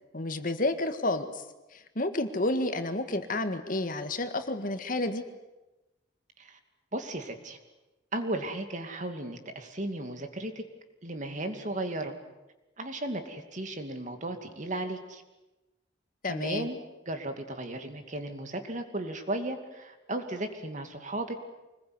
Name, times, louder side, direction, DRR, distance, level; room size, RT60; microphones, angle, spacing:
voice 1, 0.1-1.4 1.7-5.2 16.2-16.7, left 2 dB, 50° left, 8 dB, 1.8 m, -30 dB
voice 2, 6.9-7.6 8.1-10.6 11.0-12.2 12.8-15.2 16.3-16.8 17.1-21.3, right 1 dB, 45° right, 7 dB, 2.5 m, -35 dB
25.0 x 20.5 x 9.6 m, 1.0 s
head